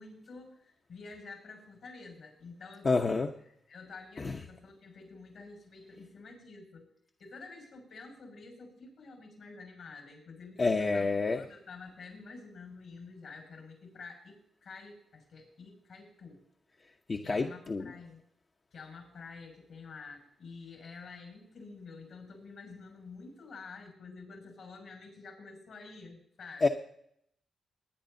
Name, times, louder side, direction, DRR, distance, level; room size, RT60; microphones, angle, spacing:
voice 1, 0.0-3.2 3.7-6.9 7.2-16.4 17.2-18.2 18.7-26.7, left 4 dB, 75° left, 1 dB, 6.4 m, -49 dB
voice 2, 2.8-3.3 4.2-4.4 10.6-11.5 17.1-18.0 26.6-26.7, left 3 dB, 45° left, 3 dB, 0.9 m, -28 dB
20.5 x 10.0 x 2.8 m, 0.70 s
supercardioid pair, 55°, 0 cm